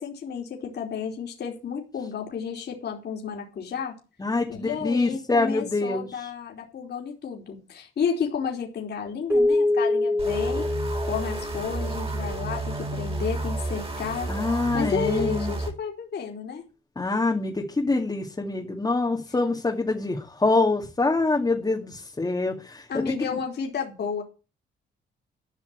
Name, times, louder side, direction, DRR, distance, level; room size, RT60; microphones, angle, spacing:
voice 1, 0.0-4.0 4.5-10.7 11.1-16.6 22.9-24.2, left 6 dB, 55° left, 1 dB, 3.6 m, -32 dB
voice 2, 4.2-6.3 14.3-15.6 17.0-23.0, left 3 dB, 20° left, 0 dB, 2.2 m, -25 dB
Keyboard (musical), 9.3-12.3, left 2 dB, 10° right, 3.4 m, -25 dB
sound 1, 10.2-15.7, right 2 dB, 30° right, 3.9 m, -31 dB
13.0 x 5.9 x 8.0 m, 0.32 s
cardioid pair, 90°, 20 cm